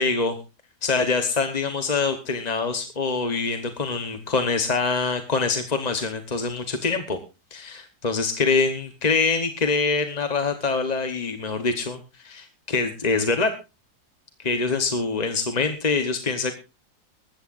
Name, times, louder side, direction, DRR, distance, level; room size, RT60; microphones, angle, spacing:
voice 1, 0.0-0.3 0.8-7.2 7.5-13.5 14.4-16.5, left 4 dB, 30° left, 7 dB, 1.0 m, -24 dB
20.0 x 14.5 x 2.5 m, 0.28 s
omnidirectional pair, 1.7 m